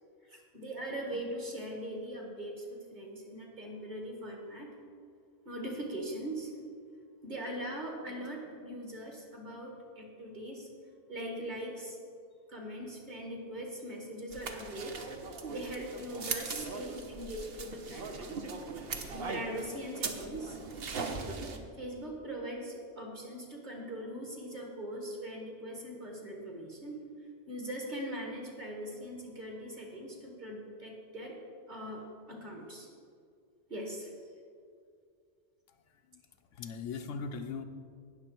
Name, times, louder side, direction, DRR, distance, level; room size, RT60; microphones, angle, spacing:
voice 1, 0.2-4.8 5.5-6.6 7.2-10.7 11.1-12.0 12.5-15.1 15.5-18.4 19.1-20.6 21.8-27.1 27.5-32.9 33.7-34.1, right 1 dB, 40° right, 0 dB, 2.1 m, -41 dB
sound 1, 14.3-21.6, right 4 dB, 55° right, 1.1 m, -39 dB
voice 2, 35.7-36.2 36.5-37.6, left 5 dB, 80° left, 6 dB, 1.1 m, -40 dB
18.5 x 6.6 x 4.5 m, 2.2 s
omnidirectional pair, 1.3 m